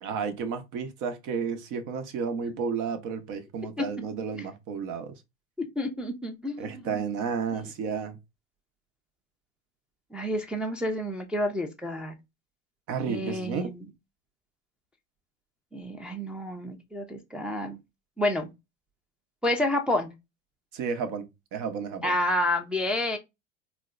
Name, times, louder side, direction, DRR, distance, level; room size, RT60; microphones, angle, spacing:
voice 1, 0.0-5.1 6.6-8.2 12.9-13.7 20.7-22.2, right 6 dB, 50° right, 0.9 m, -32 dB
voice 2, 5.6-7.0 7.5-7.6 10.1-12.1 13.1-13.9 15.7-17.8 18.2-18.5 19.4-20.1 22.0-23.2, left 1 dB, 5° right, 0.5 m, -29 dB
4.2 x 2.1 x 2.5 m
hypercardioid pair, 90°, 40 cm